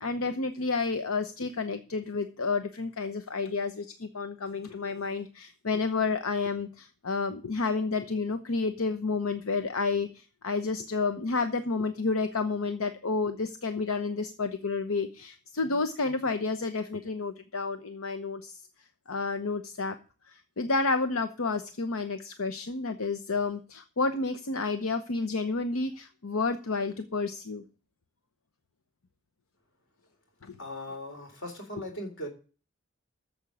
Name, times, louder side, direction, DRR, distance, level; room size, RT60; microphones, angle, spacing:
voice 1, 0.0-18.6 19.1-20.0 20.3-27.6 30.4-30.6, left 4 dB, 85° left, 9 dB, 0.8 m, -30 dB
voice 2, 30.6-32.3, equal, 60° left, 4 dB, 3.5 m, -38 dB
8.9 x 7.2 x 8.4 m, 0.37 s
head